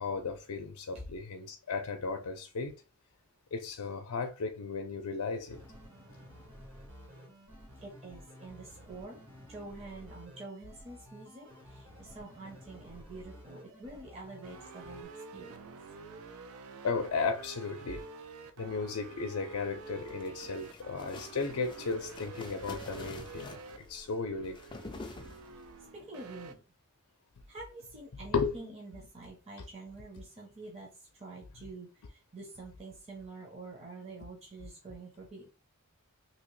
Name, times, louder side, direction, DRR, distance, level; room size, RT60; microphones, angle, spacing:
voice 1, 0.0-2.7 3.5-5.6 16.8-18.0 18.6-23.6 23.9-24.5 28.3-28.8, left 4 dB, 85° left, 0.5 m, -35 dB
sound 1, 5.5-15.0, equal, 65° right, 1.2 m, -52 dB
voice 2, 7.8-9.2 9.5-15.6 25.9-26.6 27.5-30.9 31.2-35.5, right 3 dB, 30° right, 0.7 m, -47 dB
sound 2, 14.4-26.5, right 4 dB, 80° right, 0.5 m, -48 dB
sound 3, 19.8-25.8, left 3 dB, 20° left, 0.3 m, -48 dB
2.9 x 2.8 x 3.1 m
head